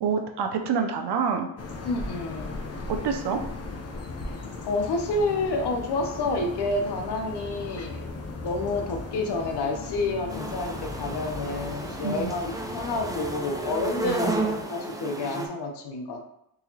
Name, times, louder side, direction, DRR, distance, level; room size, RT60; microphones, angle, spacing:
voice 1, 0.0-1.5 2.9-3.4 12.0-12.3 14.0-14.2, right 6 dB, 80° right, 5 dB, 0.6 m, -27 dB
sound 1, 1.6-14.6, left 3 dB, 40° left, 0.6 m, -37 dB
voice 2, 1.8-2.5 4.7-8.0 8.4-16.2, left 2 dB, 80° left, 4 dB, 0.6 m, -29 dB
sound 2, 10.3-15.5, right 2 dB, 10° right, 0.4 m, -32 dB
3.9 x 2.8 x 2.7 m, 0.77 s
cardioid pair, 95°, 40 cm